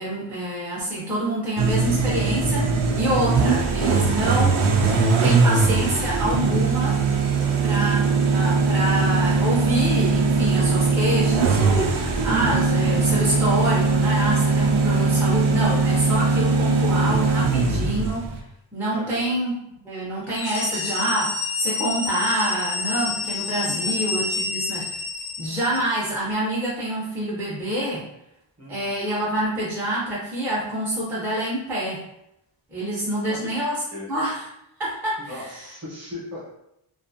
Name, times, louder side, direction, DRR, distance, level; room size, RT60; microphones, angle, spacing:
voice 1, 0.0-4.6 5.2-7.0 7.6-18.4 18.7-19.5 19.8-25.0 25.4-28.0 28.7-32.0 32.7-33.8 34.1-34.4 34.8-35.5, right 1 dB, 5° right, -8 dB, 0.5 m, -26 dB
sound 1, 1.6-18.4, right 4 dB, 90° right, 0.5 m, -20 dB
voice 2, 18.9-19.2 28.6-28.9 33.3-33.4 33.9-34.1 35.3-36.5, left 1 dB, 35° right, -5 dB, 0.8 m, -37 dB
sound 2, 20.3-26.0, left 4 dB, 80° left, 0.6 m, -28 dB
2.5 x 2.4 x 2.5 m, 0.82 s
wide cardioid pair, 180°, 48 cm